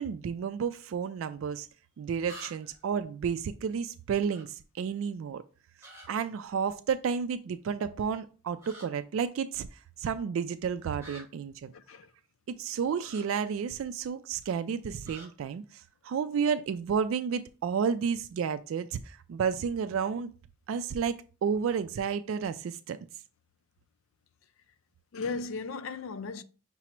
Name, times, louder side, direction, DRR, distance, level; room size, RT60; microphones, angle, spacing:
voice 1, 0.0-1.7 2.0-5.4 6.1-9.7 10.0-11.7 12.5-20.3 20.7-21.2 21.4-23.0, right 6 dB, 80° right, 0.3 m, -31 dB
sound 1, 1.2-1.3 2.2-2.8 4.3-4.4 5.8-6.1 8.6-8.9 11.0-11.2 13.0-13.2 15.0-15.3, right 1 dB, 15° right, 1.4 m, -47 dB
voice 2, 11.7-12.1 25.1-26.4, left 4 dB, 75° left, 0.4 m, -36 dB
5.8 x 2.0 x 4.3 m
head